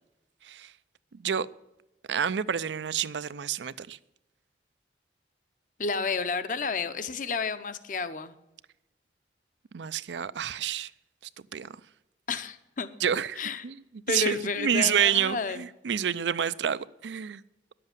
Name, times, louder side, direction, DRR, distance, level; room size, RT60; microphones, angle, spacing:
voice 1, 2.1-4.0 9.7-10.9 11.5-11.7 13.0-13.7 14.1-17.4, right 8 dB, 85° right, 0.5 m, -28 dB
voice 2, 5.8-8.3 12.3-12.9 13.4-13.6 14.1-15.6, left 4 dB, 45° left, 0.7 m, -31 dB
10.5 x 7.7 x 9.0 m
head